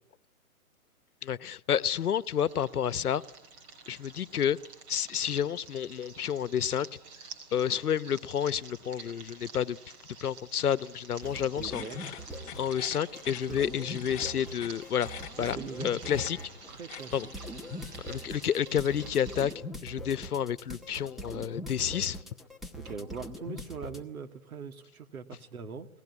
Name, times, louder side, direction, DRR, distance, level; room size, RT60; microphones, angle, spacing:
voice 1, 1.2-3.2 3.9-4.6 4.9-6.9 7.5-9.8 10.2-12.1 12.6-15.1 15.4-15.6 15.8-16.4 17.1-17.3 18.0-19.5 19.8-22.2, left 9 dB, 80° left, 16 dB, 1.1 m, -30 dB
sound 1, 2.0-19.5, right 4 dB, 25° right, 4.3 m, -50 dB
sound 2, 11.2-12.9 13.1-24.0, equal, ahead, 1.1 m, -42 dB
sound 3, 11.6-18.6, left 10 dB, 15° left, 1.4 m, -48 dB
voice 2, 11.6-12.0 12.7-12.8 13.5-13.6 15.4-16.1 16.7-17.1 22.8-25.9, right 5 dB, 70° right, 8 dB, 2.6 m, -42 dB
29.0 x 20.0 x 9.8 m, 0.79 s
hypercardioid pair, 155°, 44 cm